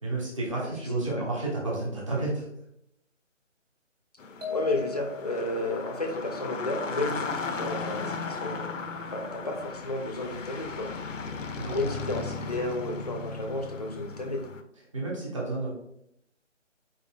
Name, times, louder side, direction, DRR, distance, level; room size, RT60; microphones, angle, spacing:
voice 1, 0.0-2.5 11.6-11.8 14.9-15.7, right 2 dB, 25° right, -5 dB, 1.0 m, -31 dB
sound 1, 4.2-14.6, left 4 dB, 80° left, 0.6 m, -36 dB
sound 2, 4.4-5.6, left 6 dB, 80° right, 1.3 m, -37 dB
voice 2, 4.5-8.7 9.1-10.9 11.6-14.4, left 2 dB, 35° left, 1 dB, 0.5 m, -32 dB
4.6 x 4.0 x 2.2 m, 0.78 s
figure-of-eight pair, 155°, 37 cm